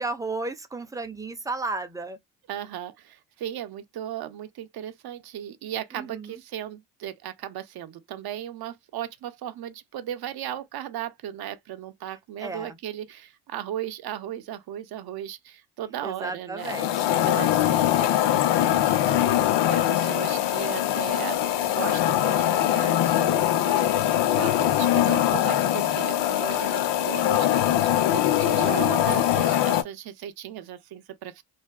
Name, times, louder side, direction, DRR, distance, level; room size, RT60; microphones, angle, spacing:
voice 1, 0.0-2.2 5.9-6.4 12.4-12.8 16.0-17.2 28.3-28.6, right 3 dB, 10° right, 0.4 m, -34 dB
voice 2, 2.5-16.8 17.2-18.3 18.6-21.4 21.7-27.5 27.8-31.4, right 11 dB, 55° right, 0.6 m, -36 dB
sound 1, 16.6-29.8, left 12 dB, 65° left, 0.5 m, -22 dB
2.5 x 2.2 x 2.3 m
supercardioid pair, 70°, 46 cm